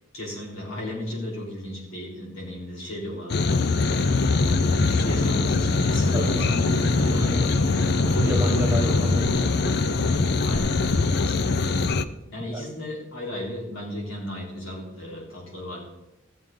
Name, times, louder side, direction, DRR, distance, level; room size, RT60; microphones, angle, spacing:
voice 1, 0.1-7.5 10.4-11.6 12.3-15.8, left 1 dB, 75° left, -3 dB, 3.4 m, -35 dB
sound 1, 3.3-12.0, left 3 dB, 55° left, 0.5 m, -22 dB
Bowed string instrument, 5.8-11.2, right 2 dB, 25° right, 1.1 m, -38 dB
voice 2, 6.1-6.6 8.0-9.5 12.5-12.6, equal, 10° right, 1 dB, 1.5 m, -29 dB
15.0 x 7.7 x 3.7 m, 0.94 s
head